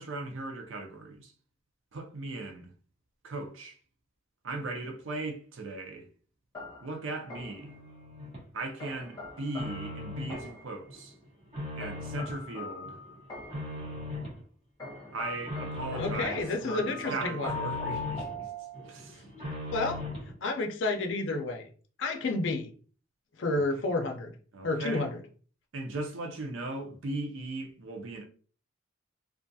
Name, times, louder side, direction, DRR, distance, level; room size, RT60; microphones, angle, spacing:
voice 1, 0.0-1.3 1.9-2.7 3.2-3.8 4.4-6.1 6.8-7.8 8.5-11.1 11.8-13.0 15.1-18.5 18.9-19.3 23.6-23.7 24.5-25.1 25.7-28.2, right 2 dB, 85° right, 0.6 m, -38 dB
sound 1, 6.5-7.8 8.8-10.8 11.8-13.8 14.8-19.1, left 2 dB, 20° left, 0.8 m, -41 dB
sound 2, 7.6-8.5 8.9-10.5 10.9-12.4 12.8-14.4 14.8-16.4 16.8-18.3 18.7-20.3, left 1 dB, 35° right, 1.0 m, -39 dB
voice 2, 16.0-17.5 19.4-20.0 20.4-21.7 22.0-22.7 23.4-24.3 24.6-25.2, left 2 dB, 70° left, 0.5 m, -30 dB
2.4 x 2.3 x 2.6 m
head